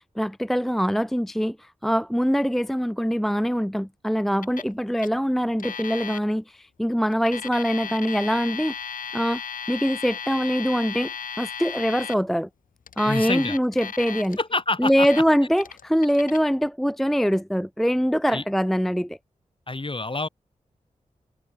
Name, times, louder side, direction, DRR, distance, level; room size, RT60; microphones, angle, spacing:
voice 1, 0.2-8.7 9.1-9.4 9.7-11.1 11.4-12.5 13.0-14.4 14.8-19.2, equal, ahead, 0.5 m, -23 dB
Alarm, 4.4-4.7 5.0-5.1 5.6-6.2 7.1-12.2 12.9-14.4 14.9-15.2 15.6-16.4, left 7 dB, 85° left, 1.1 m, -35 dB
voice 2, 13.1-13.6 14.4-15.1 18.3-18.4 19.7-20.3, left 3 dB, 40° left, 3.8 m, -27 dB
cardioid pair, 40°, 14 cm